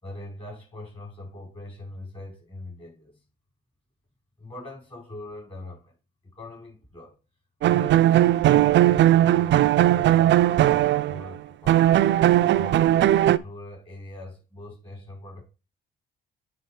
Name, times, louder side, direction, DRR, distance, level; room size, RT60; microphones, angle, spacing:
voice 1, 0.0-3.2 4.4-5.9 6.3-7.1 7.7-12.1 12.5-15.4, left 1 dB, 25° left, 5.1 m, -41 dB
sound 1, 7.6-11.3 11.7-13.4, right 13 dB, 65° right, 0.5 m, -18 dB
9.3 x 3.7 x 4.8 m
cardioid pair, 90°, 20 cm